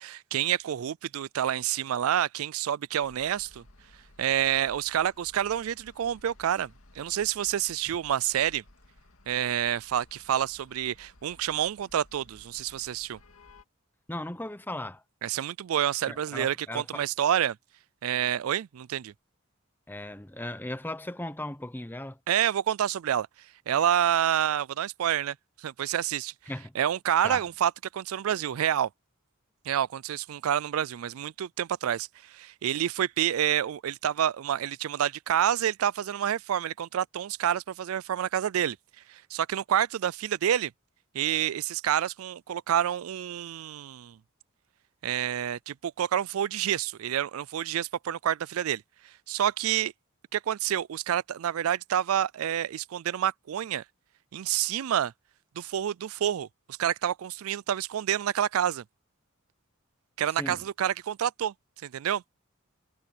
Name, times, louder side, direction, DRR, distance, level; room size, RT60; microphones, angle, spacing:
voice 1, 0.0-3.6 4.2-8.6 9.3-13.2 15.2-17.6 18.0-19.1 22.3-23.3 23.7-25.4 25.6-26.3 26.7-28.9 29.7-38.8 39.1-40.7 41.1-44.2 45.0-48.8 49.3-49.9 50.3-53.8 54.3-55.1 55.6-58.8 60.2-61.5 61.8-62.2, right 10 dB, 85° right, 0.4 m, -28 dB
sound 1, 3.0-13.6, left 1 dB, 80° left, 2.4 m, -57 dB
voice 2, 14.1-15.0 16.1-17.0 19.9-22.2 26.5-26.7 27.2-27.4 60.4-60.6, left 1 dB, 10° left, 0.9 m, -37 dB
head